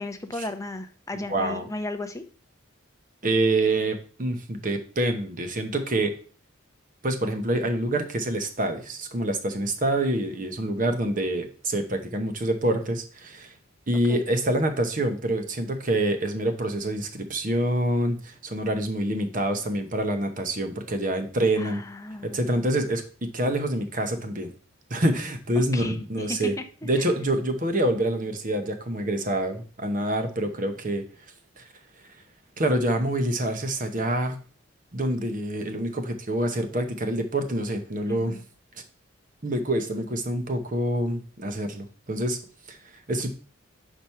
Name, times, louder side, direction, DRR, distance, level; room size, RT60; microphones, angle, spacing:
voice 1, 0.0-2.2 14.1-14.2 21.6-22.5 25.7-26.5 27.0-27.1 38.1-38.4, left 2 dB, 15° left, 7 dB, 0.6 m, -35 dB
voice 2, 1.1-1.7 3.2-6.1 7.0-13.5 13.9-21.8 22.2-24.5 24.9-26.5 26.8-31.0 31.6-31.7 32.6-34.4 34.9-38.4 38.7-38.8 39.4-42.4 42.7-43.3, right 1 dB, 40° right, 6 dB, 0.9 m, -26 dB
5.1 x 4.5 x 5.6 m, 0.40 s
head